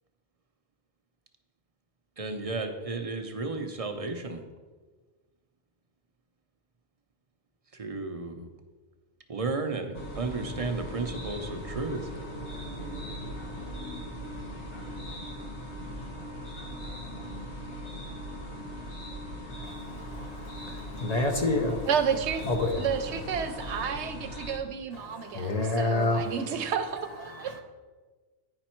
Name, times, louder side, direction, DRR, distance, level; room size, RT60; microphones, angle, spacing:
voice 1, 2.2-4.4 7.7-8.5 9.3-12.1, right 3 dB, 40° right, 5 dB, 0.6 m, -33 dB
sound 1, 9.9-24.6, equal, 85° left, 1.6 m, -39 dB
voice 2, 19.6-21.9 22.5-22.8 24.9-26.4 27.3-27.6, left 2 dB, 40° left, 3 dB, 0.7 m, -29 dB
voice 3, 21.9-22.4 22.8-27.6, right 7 dB, 85° right, 8 dB, 0.9 m, -31 dB
9.7 x 5.2 x 4.4 m, 1.4 s
omnidirectional pair, 1.1 m